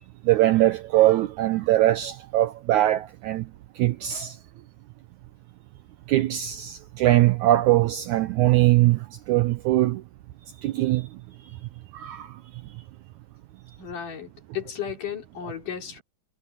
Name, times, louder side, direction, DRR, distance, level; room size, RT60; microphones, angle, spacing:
voice 1, 0.2-3.5 3.7-4.4 6.1-10.0 10.6-11.2 11.9-12.4, right 15 dB, 90° right, 1.7 m, -21 dB
voice 2, 13.8-16.0, left 9 dB, 60° left, 5.0 m, -34 dB
omnidirectional pair, 4.2 m